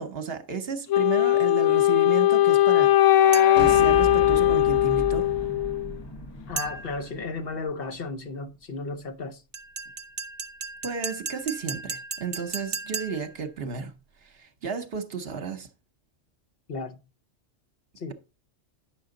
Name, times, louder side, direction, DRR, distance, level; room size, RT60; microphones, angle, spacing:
voice 1, 0.0-5.3 10.8-13.9 14.2-15.7, right 5 dB, 55° right, 1.1 m, -33 dB
Wind instrument woodwind instrument, 0.9-6.0, left 14 dB, 85° left, 0.9 m, -19 dB
sound 1, 3.3-3.8 6.6-7.1 9.5-13.4, right 4 dB, 40° right, 0.7 m, -36 dB
sound 2, 3.6-8.0, right 2 dB, 25° left, 0.7 m, -35 dB
voice 2, 6.5-9.4 16.7-17.0 18.0-18.1, left 3 dB, 55° left, 0.9 m, -34 dB
9.1 x 6.2 x 3.8 m
omnidirectional pair, 1.2 m